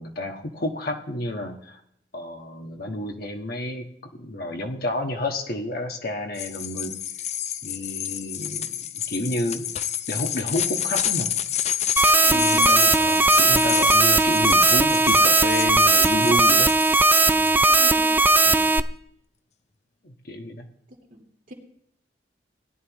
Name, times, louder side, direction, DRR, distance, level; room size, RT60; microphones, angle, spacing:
voice 1, 0.0-1.8 2.1-7.0 7.6-9.7 10.1-11.3 12.3-16.7 17.3-17.5 18.5-18.7 20.0-20.7, left 1 dB, 60° left, 2 dB, 1.4 m, -30 dB
sound 1, 6.3-17.5, left 10 dB, 40° left, 0.6 m, -29 dB
sound 2, 12.0-18.8, right 3 dB, 10° right, 0.3 m, -18 dB
voice 2, 12.2-12.8 17.7-18.2 21.1-21.5, equal, 50° right, 2 dB, 2.5 m, -38 dB
18.5 x 11.0 x 3.1 m, 0.72 s
head